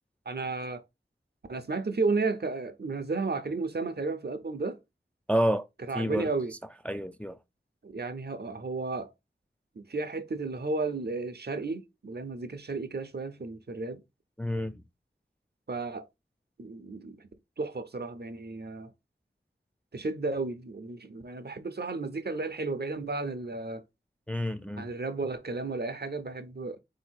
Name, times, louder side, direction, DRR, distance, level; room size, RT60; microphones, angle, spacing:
voice 1, 0.3-0.8 1.5-4.8 5.8-6.5 7.8-9.1 9.8-14.0 15.7-16.1 16.6-17.3 17.6-18.9 19.9-23.8 24.8-26.8, right 3 dB, 55° right, 0.6 m, -33 dB
voice 2, 5.3-5.7 5.9-6.3 6.9-7.4 14.4-14.7 24.3-24.9, equal, 5° left, 0.3 m, -29 dB
3.8 x 2.7 x 4.4 m
wide cardioid pair, 45°, 20 cm